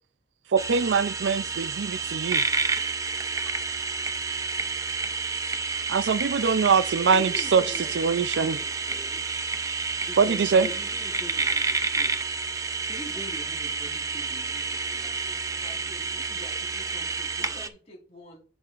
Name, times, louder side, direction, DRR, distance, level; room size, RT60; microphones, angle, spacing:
voice 1, 0.5-2.5 5.9-7.6 7.9-8.6 10.2-10.7, right 5 dB, 85° right, 0.4 m, -23 dB
sound 1, 0.6-17.7, right 4 dB, 20° right, 0.4 m, -29 dB
voice 2, 7.1-8.2 8.4-9.2 10.0-12.1 12.5-15.1, equal, 15° left, 1.2 m, -43 dB
voice 3, 14.8-18.4, equal, 35° left, 4.1 m, -49 dB
8.0 x 6.9 x 2.5 m
head